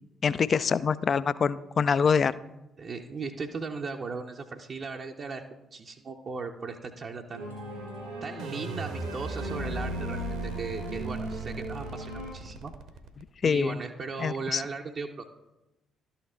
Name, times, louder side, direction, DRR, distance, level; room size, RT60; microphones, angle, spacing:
voice 1, 0.2-2.4 13.4-13.8 14.2-14.6, left 6 dB, 40° left, 16 dB, 0.3 m, -25 dB
voice 2, 2.8-5.4 5.7-7.5 8.2-12.7 13.4-15.3, right 4 dB, 45° right, 2 dB, 0.6 m, -37 dB
sound 1, 7.3-12.3, equal, 85° right, 2.7 m, -37 dB
sound 2, 8.4-13.4, right 3 dB, 65° right, 1.0 m, -38 dB
12.0 x 7.0 x 3.7 m, 0.97 s
figure-of-eight pair, 45°, 0 cm